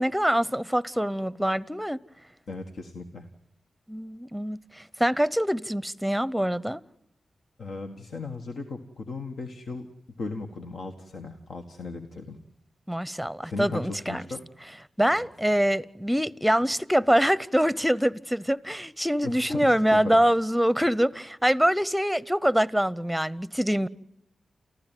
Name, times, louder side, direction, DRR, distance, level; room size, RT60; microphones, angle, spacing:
voice 1, 0.0-2.0 3.9-6.8 12.9-14.2 15.0-23.9, equal, 5° right, 0.9 m, -24 dB
voice 2, 2.5-3.3 7.6-9.9 10.2-12.4 13.4-14.4 19.2-20.2, left 3 dB, 70° left, 1.6 m, -36 dB
29.0 x 15.0 x 9.2 m
supercardioid pair, 40°, 0 cm